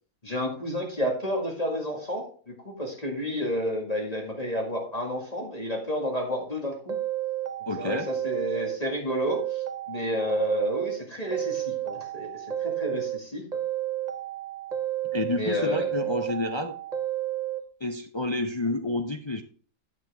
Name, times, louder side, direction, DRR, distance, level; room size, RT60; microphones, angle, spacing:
voice 1, 0.2-7.0 7.8-13.4 15.3-15.9, equal, 25° left, 0 dB, 2.0 m, -30 dB
sound 1, 6.9-8.8 9.1-11.0 11.3-13.2 13.5-15.4 15.7-17.6, right 12 dB, 40° right, 0.7 m, -31 dB
voice 2, 7.7-8.1 15.1-16.7 17.8-19.4, left 2 dB, 50° left, 5 dB, 0.3 m, -29 dB
9.5 x 7.6 x 3.5 m, 0.42 s
omnidirectional pair, 1.5 m